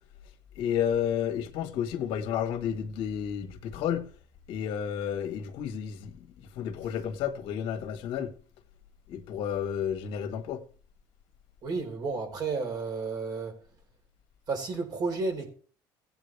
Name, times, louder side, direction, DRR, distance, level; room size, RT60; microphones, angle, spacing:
voice 1, 0.6-4.1 4.5-6.1 6.5-8.3 9.1-10.6, left 9 dB, 70° left, 1.8 m, -31 dB
voice 2, 11.6-13.6 14.5-15.5, right 4 dB, 45° right, 4.3 m, -32 dB
17.0 x 9.0 x 3.4 m
supercardioid pair, 100°, 9 cm